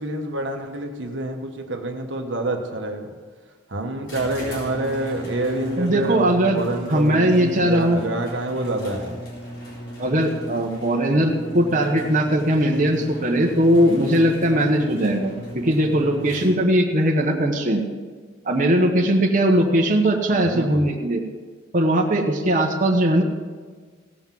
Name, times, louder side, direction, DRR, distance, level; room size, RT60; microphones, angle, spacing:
voice 1, 0.0-3.1 3.7-6.2 6.5-9.2 20.4-20.9, right 2 dB, 65° right, 4 dB, 1.3 m, -27 dB
sound 1, 4.0-16.8, equal, 75° left, 4.3 m, -36 dB
voice 2, 5.8-6.6 6.9-8.0 10.0-17.8 18.4-21.2 21.7-23.2, right 1 dB, 40° right, 0 dB, 1.2 m, -19 dB
17.0 x 5.8 x 7.6 m, 1.5 s
head